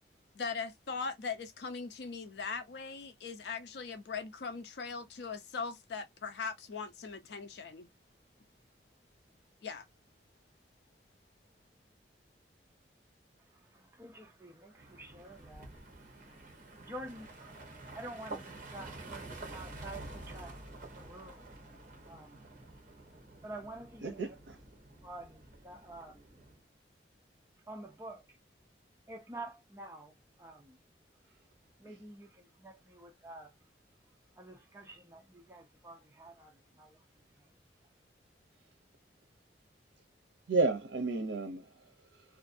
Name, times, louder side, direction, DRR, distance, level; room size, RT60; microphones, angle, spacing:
voice 1, 0.4-7.9 9.6-9.9, left 5 dB, 70° left, 0.5 m, -40 dB
voice 2, 13.5-16.4 16.8-17.6 17.9-20.6 20.9-21.5 22.1-22.4 23.4-24.4 25.0-26.4 27.7-28.4 29.1-30.8 31.8-33.5 34.4-37.5, right 2 dB, 15° right, 0.5 m, -49 dB
sound 1, 14.8-26.6, right 2 dB, 45° right, 0.9 m, -49 dB
voice 3, 24.0-24.6 40.5-42.2, right 3 dB, 85° right, 0.5 m, -32 dB
2.5 x 2.5 x 2.5 m
head